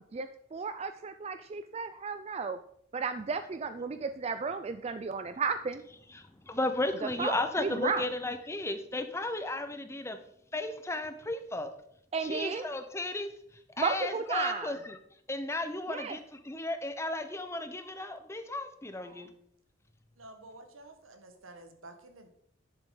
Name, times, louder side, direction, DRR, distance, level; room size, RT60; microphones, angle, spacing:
voice 1, 0.1-2.6 2.9-5.8 7.0-8.0 12.1-12.7 13.8-14.7 15.9-16.2 19.1-19.2, right 5 dB, 30° right, 10 dB, 0.3 m, -34 dB
voice 2, 6.1-10.2 10.5-11.7 12.2-13.3 13.8-15.0 15.3-19.3, left 2 dB, 15° left, 8 dB, 0.7 m, -34 dB
voice 3, 20.2-22.3, right 2 dB, 85° right, 6 dB, 1.5 m, -51 dB
10.5 x 7.2 x 3.8 m, 0.70 s
head